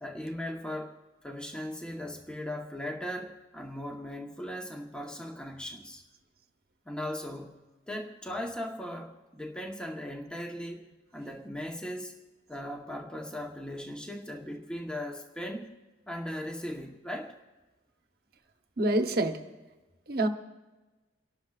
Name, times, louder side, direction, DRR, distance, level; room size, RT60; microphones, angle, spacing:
voice 1, 0.0-6.0 6.8-10.8 11.1-12.1 12.5-15.7 16.1-17.4, left 1 dB, 5° left, 1 dB, 1.0 m, -38 dB
voice 2, 18.8-19.4 20.1-20.3, right 1 dB, 55° right, 6 dB, 1.0 m, -26 dB
30.0 x 12.0 x 2.4 m, 1.2 s
head